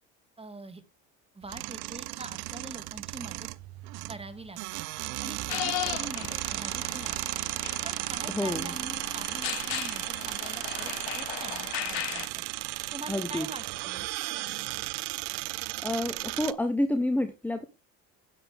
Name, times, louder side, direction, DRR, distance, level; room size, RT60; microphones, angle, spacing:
voice 1, 0.4-0.8 1.3-3.5 4.1-4.9 5.2-7.4 7.8-12.4 12.9-14.1, right 2 dB, 15° right, 9 dB, 2.2 m, -44 dB
sound 1, 1.4-16.5, right 21 dB, 75° right, 0.6 m, -35 dB
sound 2, 5.5-12.3, left 15 dB, 80° left, 1.2 m, -37 dB
voice 2, 8.3-8.7 13.1-13.5 15.8-17.7, left 1 dB, 5° left, 10 dB, 1.1 m, -29 dB
10.5 x 8.0 x 3.5 m, 0.28 s
supercardioid pair, 80°, 39 cm